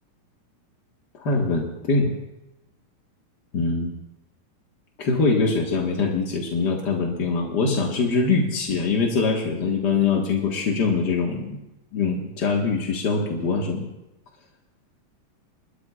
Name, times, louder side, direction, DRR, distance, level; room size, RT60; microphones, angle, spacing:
voice 1, 1.1-2.1 3.5-4.0 5.0-11.6 11.9-13.9, left 4 dB, 50° left, -1 dB, 1.3 m, -23 dB
29.5 x 13.0 x 2.4 m, 0.94 s
omnidirectional pair, 4.0 m